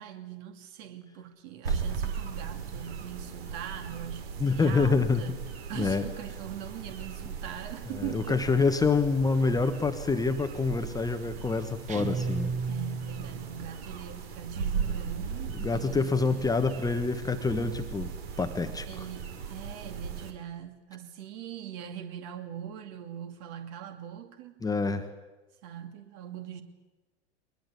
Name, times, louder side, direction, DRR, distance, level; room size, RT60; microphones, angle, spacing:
voice 1, 0.0-5.4 5.7-8.4 12.7-16.6 18.9-24.6 25.6-26.6, right 10 dB, 45° right, 7 dB, 2.5 m, -41 dB
sound 1, 1.7-20.3, right 6 dB, 60° right, 3.4 m, -38 dB
voice 2, 4.4-5.4 5.7-6.0 8.0-12.5 15.6-18.9 24.6-25.1, left 4 dB, 10° left, 8 dB, 1.3 m, -27 dB
sound 2, 11.9-13.6, right 4 dB, 20° right, 1.2 m, -33 dB
22.0 x 21.0 x 8.4 m, 1.1 s
figure-of-eight pair, 90°, 34 cm